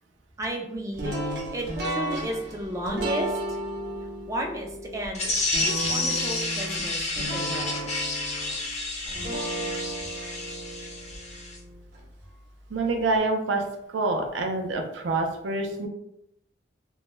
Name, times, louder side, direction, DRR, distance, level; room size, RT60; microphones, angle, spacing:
voice 1, 0.4-3.3 4.3-5.3 5.6-7.8, right 1 dB, 15° right, 1 dB, 0.3 m, -33 dB
sound 1, 1.0-12.0, right 1 dB, 65° right, 0.7 m, -34 dB
sound 2, 5.1-11.6, left 3 dB, 35° left, 0.5 m, -30 dB
voice 2, 12.7-13.6 13.9-15.9, right 3 dB, 85° right, 4 dB, 0.4 m, -26 dB
2.2 x 2.1 x 3.1 m, 0.81 s
head